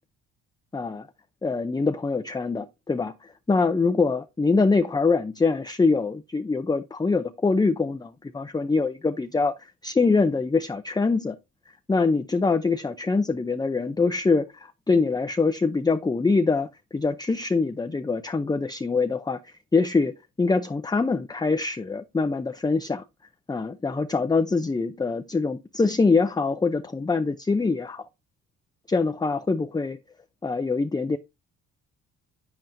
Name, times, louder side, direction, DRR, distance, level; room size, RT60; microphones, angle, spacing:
voice 1, 0.7-1.1 1.4-11.4 11.9-23.0 23.5-28.1 28.9-30.0 30.4-31.2, left 4 dB, 10° left, 0.5 m, -24 dB
8.7 x 7.7 x 2.6 m
cardioid pair, 85°, 33 cm